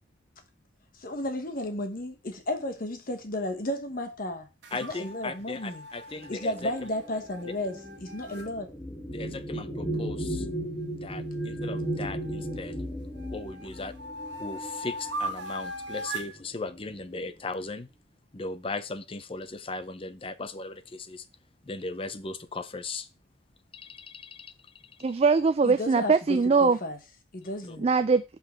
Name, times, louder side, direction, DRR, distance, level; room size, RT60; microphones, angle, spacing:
voice 1, 1.0-4.5 4.8-5.8 6.3-8.7 25.6-27.0 27.3-27.9, left 1 dB, 45° left, 1.1 m, -33 dB
sound 1, 4.6-8.5 11.4-12.7 13.2-16.4, right 1 dB, 60° right, 1.3 m, -40 dB
voice 2, 4.7-6.9 9.1-10.5 10.9-12.7 13.3-13.9 14.4-17.9 18.3-21.3 21.6-23.1 23.7-24.5 27.7-27.8, left 3 dB, 30° left, 0.6 m, -37 dB
sound 2, 6.4-15.3 16.2-16.4 16.7-17.3, right 1 dB, 10° left, 1.6 m, -35 dB
voice 3, 25.0-26.8 27.8-28.2, right 4 dB, 30° right, 0.3 m, -22 dB
5.5 x 5.1 x 6.7 m
head